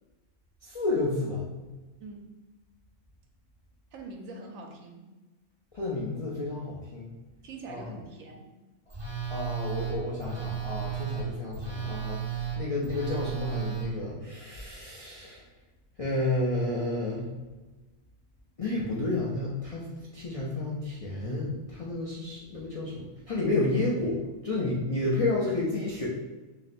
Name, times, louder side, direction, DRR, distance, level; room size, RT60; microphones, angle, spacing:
voice 1, 0.6-1.4 5.7-7.1 7.7-7.9 8.9-9.0 9.3-15.4 16.0-17.3 18.6-19.9 20.1-26.1, left 2 dB, 45° left, -6 dB, 0.4 m, -31 dB
voice 2, 3.9-5.1 7.4-8.5, right 3 dB, 80° right, 3 dB, 1.1 m, -43 dB
Telephone, 8.9-13.9, right 8 dB, 25° right, 0.7 m, -34 dB
3.1 x 2.8 x 4.2 m, 1.1 s
omnidirectional pair, 1.4 m